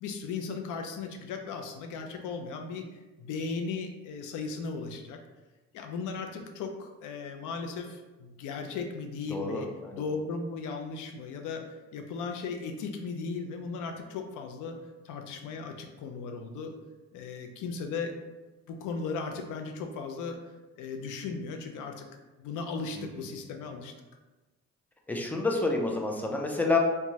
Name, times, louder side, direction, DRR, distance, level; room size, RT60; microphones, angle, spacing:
voice 1, 0.0-5.2 5.7-14.8 15.0-16.7 17.1-18.1 18.7-20.4 20.8-22.0 22.4-23.9, left 4 dB, 85° left, 4 dB, 0.5 m, -37 dB
voice 2, 9.3-10.0 23.0-23.1 25.1-26.8, left 3 dB, 5° left, 1 dB, 0.4 m, -29 dB
3.0 x 2.2 x 2.7 m, 1.1 s
cardioid pair, 90°, 30 cm